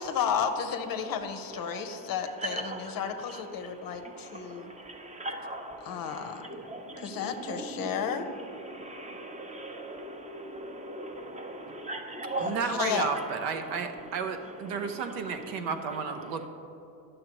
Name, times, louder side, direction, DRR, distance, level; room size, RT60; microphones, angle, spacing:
voice 1, 0.0-4.7 5.8-6.5 7.0-8.3 12.4-13.1, left 7 dB, 45° left, 7 dB, 0.6 m, -33 dB
voice 2, 1.6-2.1 2.4-12.6 12.9-13.8 14.7-15.3, right 1 dB, 15° right, 4 dB, 0.7 m, -40 dB
voice 3, 12.4-16.5, right 5 dB, 80° right, 7 dB, 0.8 m, -32 dB
9.3 x 6.6 x 2.9 m, 2.9 s
supercardioid pair, 105°, 48 cm